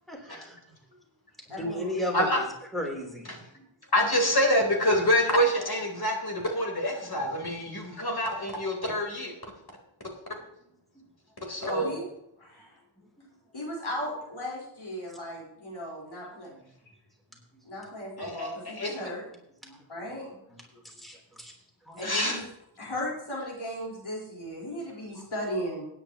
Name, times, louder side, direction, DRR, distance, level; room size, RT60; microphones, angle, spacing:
voice 1, 0.1-0.6 1.5-2.5 2.7-3.7 11.0-11.1 13.2-13.3 16.2-16.7 17.5-17.6 19.6-20.1 20.5-21.5 21.9-22.0 22.8-22.9 25.1-25.3, equal, ahead, -1 dB, 3.6 m, -37 dB
voice 2, 1.5-1.9 11.6-12.1 12.4-12.8 13.5-16.5 17.6-19.2 19.9-20.4 22.0-22.4 22.8-25.8, equal, 85° left, -4 dB, 4.6 m, -36 dB
voice 3, 3.9-9.4 11.5-12.0 18.2-19.1 22.0-22.4, equal, 50° left, 0 dB, 3.8 m, -26 dB
18.5 x 10.0 x 3.0 m, 0.79 s
wide cardioid pair, 50°, 47 cm